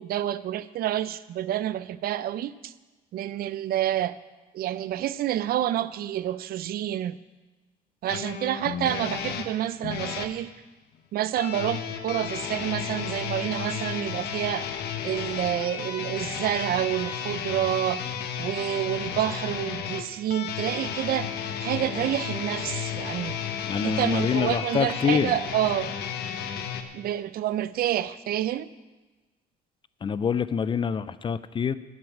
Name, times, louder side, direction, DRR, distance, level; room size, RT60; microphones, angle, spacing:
voice 1, 0.0-2.7 3.1-4.2 4.5-7.2 8.0-10.5 11.1-14.7 15.0-18.0 18.4-21.3 21.6-23.4 23.8-25.9 26.9-28.7, right 12 dB, 60° right, 16 dB, 0.5 m, -28 dB
sound 1, 8.1-10.3 11.4-26.8, left 8 dB, 70° left, 1.1 m, -33 dB
voice 2, 23.7-25.3 30.0-31.8, left 7 dB, 30° left, 15 dB, 0.5 m, -26 dB
12.0 x 6.3 x 8.6 m, 1.2 s
cardioid pair, 110°, 17 cm